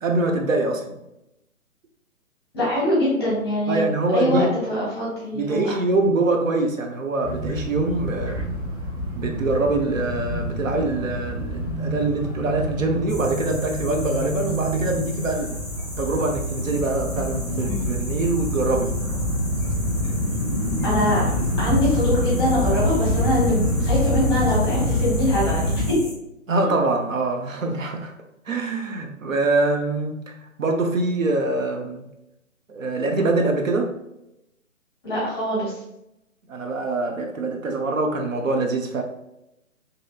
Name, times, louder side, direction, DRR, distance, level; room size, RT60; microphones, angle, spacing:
voice 1, 0.0-1.0 3.7-4.5 5.3-8.6 9.2-15.6 16.0-19.0 26.5-28.1 28.5-30.2 30.6-32.0 32.7-33.9 36.5-39.0, right 2 dB, 70° right, 3 dB, 0.6 m, -24 dB
voice 2, 2.5-5.8 20.8-21.3 21.6-26.0 35.0-35.8, left 1 dB, 20° left, -6 dB, 0.7 m, -23 dB
sound 1, 7.2-25.9, equal, 20° right, 1.3 m, -25 dB
sound 2, 13.1-26.1, equal, ahead, 1.0 m, -39 dB
2.7 x 2.7 x 2.3 m, 0.85 s
figure-of-eight pair, 135°, 42 cm